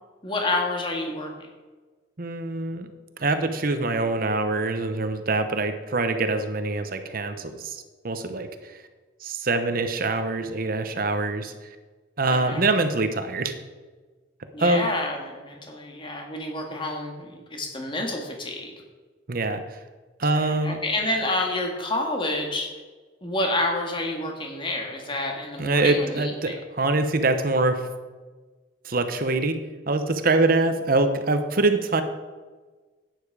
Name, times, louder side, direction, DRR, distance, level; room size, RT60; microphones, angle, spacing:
voice 1, 0.2-1.5 12.3-12.6 14.5-18.7 20.3-22.7 23.2-26.6, left 2 dB, 25° left, 1 dB, 1.9 m, -29 dB
voice 2, 2.2-2.9 3.2-8.8 9.2-11.5 12.2-13.6 14.6-14.9 19.3-19.8 20.2-20.8 25.6-27.9 28.8-32.0, right 2 dB, 50° right, 9 dB, 0.9 m, -24 dB
11.5 x 9.5 x 4.8 m, 1.3 s
head